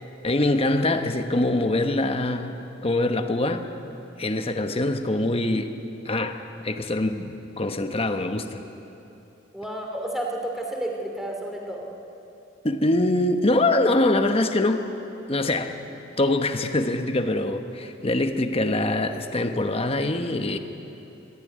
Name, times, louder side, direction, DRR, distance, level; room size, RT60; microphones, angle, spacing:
voice 1, 0.2-2.6 2.8-3.7 4.2-5.7 6.0-6.4 6.6-8.6 12.6-14.9 15.3-15.7 16.2-20.6, left 2 dB, 30° left, 7 dB, 1.1 m, -24 dB
voice 2, 9.5-11.9, right 1 dB, ahead, 0 dB, 2.8 m, -31 dB
21.5 x 15.0 x 9.3 m, 3.0 s
head